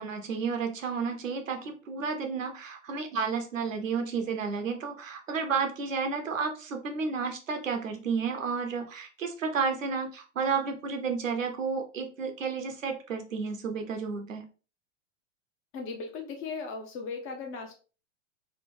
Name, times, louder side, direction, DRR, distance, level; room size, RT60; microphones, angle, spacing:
voice 1, 0.0-14.4, right 5 dB, 80° right, 5 dB, 0.9 m, -31 dB
voice 2, 15.7-17.8, left 4 dB, 35° left, 4 dB, 0.9 m, -37 dB
4.2 x 2.3 x 3.2 m, 0.35 s
figure-of-eight pair, 95°, 38 cm